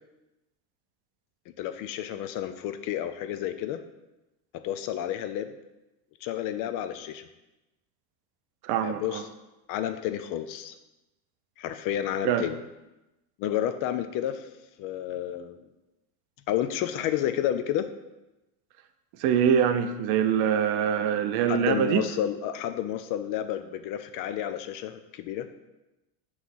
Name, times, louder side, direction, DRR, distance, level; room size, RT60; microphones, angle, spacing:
voice 1, 1.5-3.8 4.6-5.5 6.2-7.2 8.8-9.2 9.7-10.7 11.6-12.6 13.4-14.5 14.8-15.6 16.5-17.9 21.5-25.5, left 11 dB, 45° left, 10 dB, 0.5 m, -30 dB
voice 2, 8.6-9.2 12.2-12.4 19.2-22.1, right 8 dB, 50° right, 8 dB, 0.7 m, -24 dB
6.0 x 3.2 x 5.4 m, 0.99 s
supercardioid pair, 115°, 47 cm